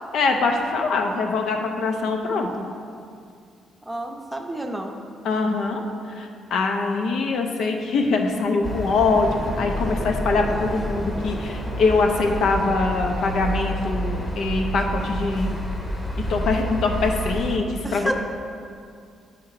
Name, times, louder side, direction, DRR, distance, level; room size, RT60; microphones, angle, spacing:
voice 1, 0.1-2.6 5.2-5.8 6.1-15.6 16.3-18.1, left 3 dB, 75° left, 3 dB, 0.7 m, -23 dB
voice 2, 3.9-4.9 17.8-18.1, right 1 dB, 10° right, 2 dB, 0.7 m, -29 dB
sound 1, 8.6-17.6, right 1 dB, 25° left, 1.0 m, -29 dB
8.2 x 3.5 x 4.8 m, 2.3 s
cardioid pair, 90°, 0 cm